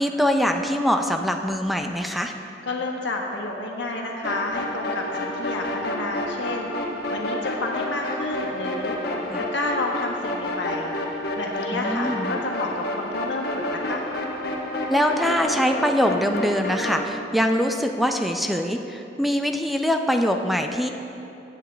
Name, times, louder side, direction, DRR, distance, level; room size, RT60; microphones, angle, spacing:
voice 1, 0.0-2.3 9.3-9.5 11.7-12.4 14.9-20.9, equal, ahead, 4 dB, 0.4 m, -23 dB
voice 2, 2.6-6.7 7.1-8.9 9.5-10.9 11.3-14.0, left 2 dB, 85° left, 0 dB, 1.4 m, -30 dB
sound 1, 4.2-17.0, left 1 dB, 60° left, 1.3 m, -29 dB
15.0 x 8.9 x 3.3 m, 2.9 s
head